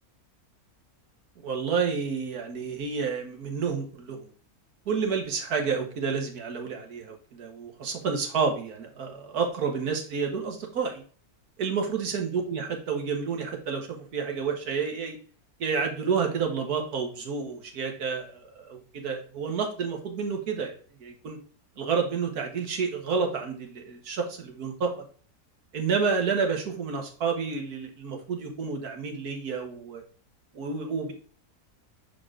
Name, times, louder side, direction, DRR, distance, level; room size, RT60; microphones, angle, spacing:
voice 1, 1.4-4.3 4.9-11.0 11.6-15.2 15.6-20.7 21.0-21.4 21.8-24.9 25.7-30.0 30.5-31.1, right 5 dB, 75° right, 3 dB, 1.8 m, -30 dB
6.4 x 4.6 x 3.7 m, 0.43 s
omnidirectional pair, 1.6 m